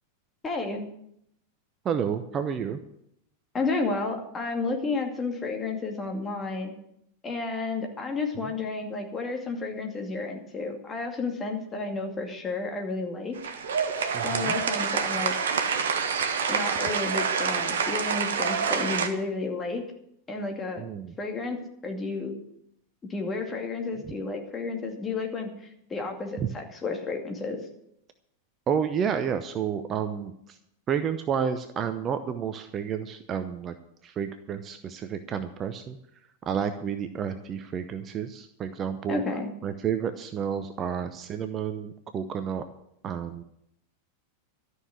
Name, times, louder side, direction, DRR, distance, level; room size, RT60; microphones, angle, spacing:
voice 1, 0.4-0.8 3.5-6.7 7.2-13.3 14.2-15.3 16.5-19.8 20.3-20.8 21.2-22.3 23.1-27.6 39.1-39.5, left 3 dB, 20° left, 3 dB, 2.4 m, -31 dB
voice 2, 1.8-2.8 8.4-8.5 14.1-14.5 20.8-21.1 26.4-26.5 28.7-30.6 30.9-33.7 34.0-36.0 36.5-39.2 39.6-42.6 43.0-43.4, right 7 dB, 30° right, 9 dB, 0.8 m, -30 dB
sound 1, 13.4-19.1, right 6 dB, 60° right, 1.2 m, -27 dB
13.0 x 6.6 x 9.7 m, 0.76 s
figure-of-eight pair, 90°, 0 cm